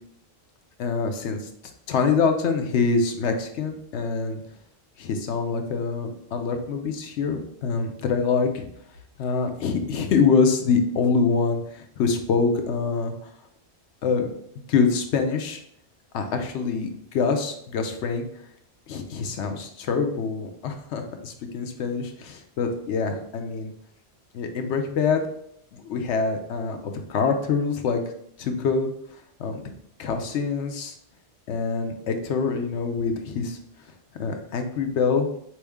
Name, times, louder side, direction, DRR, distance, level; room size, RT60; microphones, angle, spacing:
voice 1, 0.8-1.4 1.9-4.4 5.0-8.7 9.2-13.1 14.0-14.3 14.7-15.6 16.1-18.3 18.9-23.7 24.3-25.2 25.7-28.0 28.4-28.9 29.4-29.6 30.0-30.9 31.5-33.6 34.2-35.3, left 5 dB, 85° left, 6 dB, 0.9 m, -25 dB
4.3 x 3.1 x 3.5 m, 0.70 s
omnidirectional pair, 1.2 m